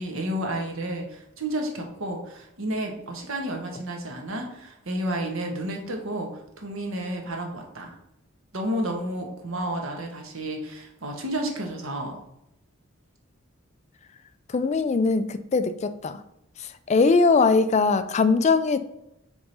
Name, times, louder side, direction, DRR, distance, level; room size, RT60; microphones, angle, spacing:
voice 1, 0.0-6.3 6.6-7.9 8.5-12.1, right 1 dB, 85° right, 2 dB, 1.3 m, -31 dB
voice 2, 14.5-16.2 16.9-18.8, left 4 dB, 35° left, 12 dB, 0.3 m, -21 dB
4.7 x 3.7 x 5.4 m, 0.81 s
head